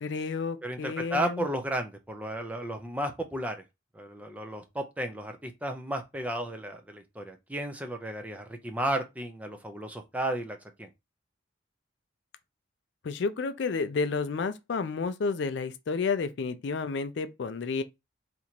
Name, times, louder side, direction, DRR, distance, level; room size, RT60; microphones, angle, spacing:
voice 1, 0.0-1.4 13.0-17.8, left 4 dB, 60° left, 0.4 m, -31 dB
voice 2, 0.6-3.6 3.9-10.9, right 1 dB, 5° right, 0.4 m, -33 dB
2.9 x 2.5 x 4.3 m
head